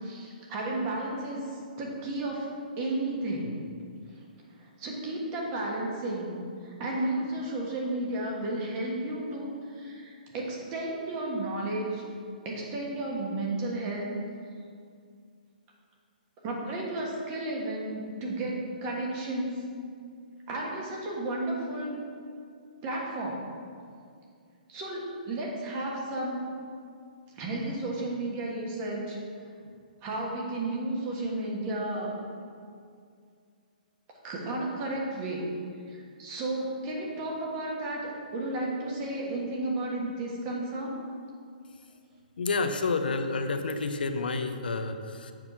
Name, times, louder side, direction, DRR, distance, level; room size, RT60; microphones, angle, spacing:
voice 1, 0.0-2.5 2.8-3.6 4.8-12.0 12.4-14.1 16.4-19.7 20.5-22.0 22.8-23.4 24.7-26.5 27.4-29.2 30.0-32.2 34.2-35.6 35.9-40.9, right 2 dB, 25° right, -2 dB, 1.4 m, -33 dB
voice 2, 42.4-45.3, left 3 dB, 90° left, 7 dB, 0.6 m, -29 dB
7.5 x 4.6 x 5.5 m, 2.2 s
hypercardioid pair, 160°, 5 cm